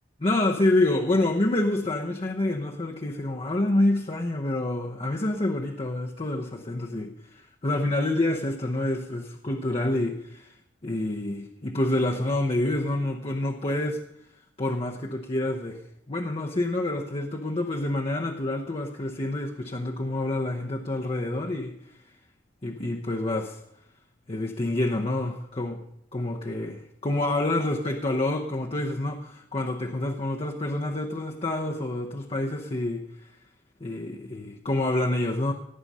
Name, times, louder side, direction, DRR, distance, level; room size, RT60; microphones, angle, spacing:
voice 1, 0.2-10.5 10.8-14.0 14.6-15.8 16.1-21.8 22.6-23.6 24.3-25.8 26.1-33.0 33.8-35.5, left 1 dB, 35° left, 1 dB, 0.9 m, -27 dB
18.0 x 8.0 x 5.5 m, 0.79 s
head